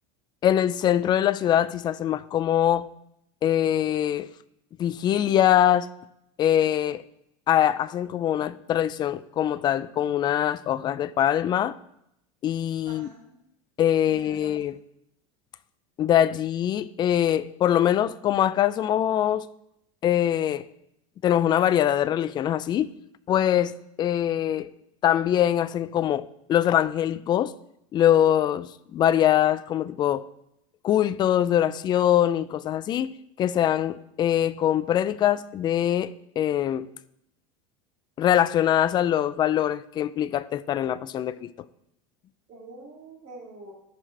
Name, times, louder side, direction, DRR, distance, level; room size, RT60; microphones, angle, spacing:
voice 1, 0.4-2.9 3.4-4.3 4.8-5.9 6.4-7.0 7.5-11.8 12.4-13.1 13.8-14.8 16.0-19.5 20.0-20.7 21.2-22.9 23.3-24.7 25.0-27.5 27.9-30.2 30.8-36.9 38.2-41.5, left 11 dB, 25° left, 0.3 m, -23 dB
voice 2, 12.8-13.4 14.0-14.5 42.5-43.7, right 2 dB, 35° right, 2.6 m, -45 dB
14.0 x 5.9 x 4.5 m
supercardioid pair, 140°, 16 cm